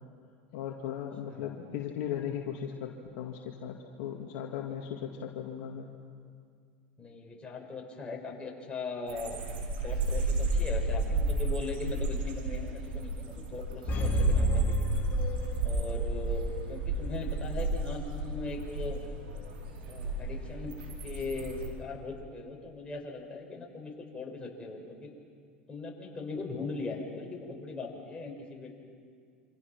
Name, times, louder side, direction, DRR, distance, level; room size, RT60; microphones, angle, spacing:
voice 1, 0.5-5.9, left 9 dB, 65° left, 2 dB, 2.1 m, -37 dB
voice 2, 1.3-1.6 4.9-5.1 7.0-9.4 9.8-14.9 15.6-19.0 19.8-20.7 21.0-25.1 25.7-28.8, left 3 dB, 20° left, -1 dB, 6.3 m, -40 dB
sound 1, 9.1-21.7, right 2 dB, 80° right, 4.7 m, -32 dB
sound 2, 13.9-16.1 16.4-16.5, left 1 dB, 35° left, 3.7 m, -31 dB
28.0 x 26.0 x 6.1 m, 2.1 s
hypercardioid pair, 90°, 5 cm